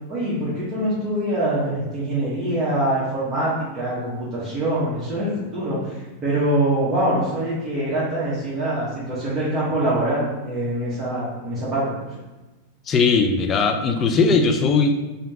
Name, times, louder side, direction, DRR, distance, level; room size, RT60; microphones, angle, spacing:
voice 1, 0.1-11.9, right 1 dB, 25° right, -10 dB, 1.1 m, -24 dB
voice 2, 12.9-15.0, left 4 dB, 25° left, 5 dB, 0.4 m, -19 dB
3.7 x 2.8 x 3.5 m, 1.1 s
supercardioid pair, 135°, 0 cm